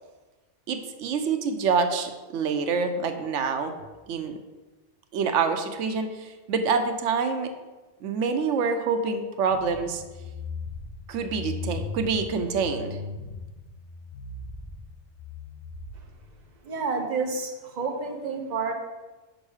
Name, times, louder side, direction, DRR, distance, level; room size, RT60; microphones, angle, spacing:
voice 1, 0.7-3.7 4.1-4.4 5.1-7.5 8.0-10.0 11.1-13.0, right 5 dB, 90° right, 7 dB, 1.0 m, -26 dB
sound 1, 9.5-16.4, left 3 dB, 60° left, 1.1 m, -38 dB
voice 2, 16.6-18.7, right 4 dB, 40° right, 2 dB, 0.9 m, -29 dB
6.4 x 5.3 x 4.8 m, 1.2 s
omnidirectional pair, 1.2 m